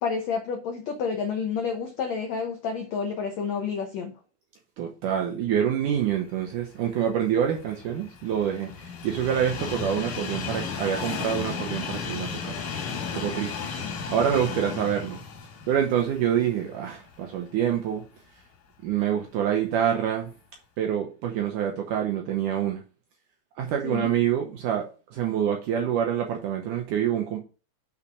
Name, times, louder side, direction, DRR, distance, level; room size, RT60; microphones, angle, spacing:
voice 1, 0.0-4.1 23.8-24.1, left 6 dB, 80° left, 1.5 m, -29 dB
voice 2, 4.8-12.6 13.1-13.5 14.1-15.2 15.7-18.0 18.8-20.3 20.8-22.8 23.6-27.4, right 9 dB, 70° right, 2.0 m, -26 dB
Train, 7.1-17.3 17.7-17.8 18.9-19.0, left 6 dB, 60° left, 3.2 m, -34 dB
6.6 x 5.7 x 4.9 m
omnidirectional pair, 4.5 m